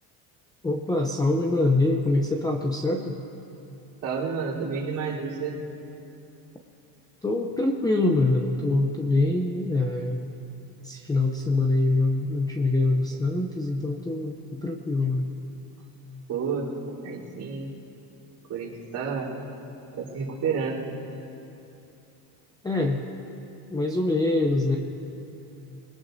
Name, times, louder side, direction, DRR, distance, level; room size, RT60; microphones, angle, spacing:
voice 1, 0.6-3.2 7.2-10.2 10.8-15.3 22.6-23.0 23.7-24.8, left 2 dB, 10° left, 2 dB, 0.6 m, -24 dB
voice 2, 4.0-5.6 16.3-17.7 18.5-19.3 19.9-20.8, right 5 dB, 45° right, -7 dB, 3.7 m, -30 dB
21.5 x 20.5 x 2.7 m, 2.8 s
cardioid pair, 150°, 43 cm